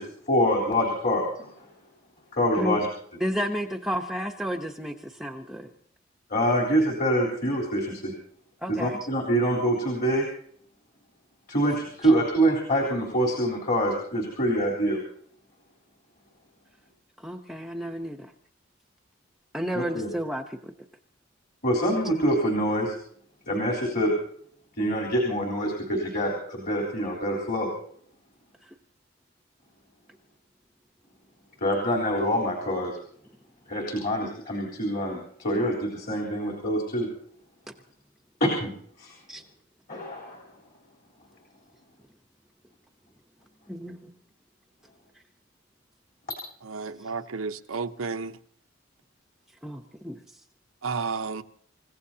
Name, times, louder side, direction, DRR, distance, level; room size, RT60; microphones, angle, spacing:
voice 1, 0.0-1.5 2.3-2.9 6.3-8.1 8.7-10.2 11.5-15.0 19.7-20.1 21.6-22.9 23.5-24.1 24.8-27.7 31.6-32.9 33.7-37.1 38.4-38.7 39.0-39.1 39.9-40.4, equal, 45° left, 3.6 m, -25 dB
voice 2, 3.2-5.7 8.6-9.1 17.2-18.3 19.5-20.7 28.6-28.7 39.3-39.4 43.7-44.1 47.0-47.1 49.6-50.4, equal, ahead, 0.9 m, -32 dB
voice 3, 46.6-48.4 50.8-51.4, right 4 dB, 90° right, 0.9 m, -32 dB
28.5 x 16.0 x 2.8 m
head